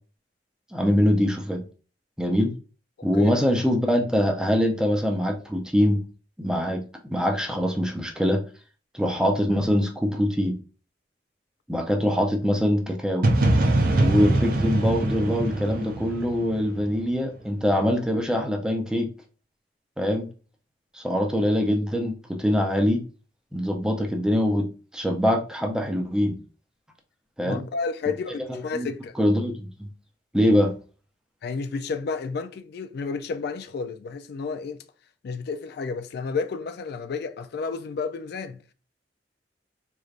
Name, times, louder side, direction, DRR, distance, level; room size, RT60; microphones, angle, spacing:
voice 1, 0.7-1.6 2.2-2.5 3.0-6.0 6.4-6.8 7.1-8.4 8.9-10.6 11.7-13.2 14.0-19.1 20.0-20.3 20.9-23.0 23.5-24.7 24.9-26.4 27.4-27.6 28.5-28.9 29.2-29.9 30.3-30.7, equal, 5° right, 0.6 m, -23 dB
sound 1, 13.2-17.1, right 1 dB, 55° right, 0.6 m, -23 dB
voice 2, 27.4-29.1 31.4-34.8 35.2-38.6, left 4 dB, 60° left, 0.3 m, -31 dB
3.8 x 3.3 x 2.4 m
head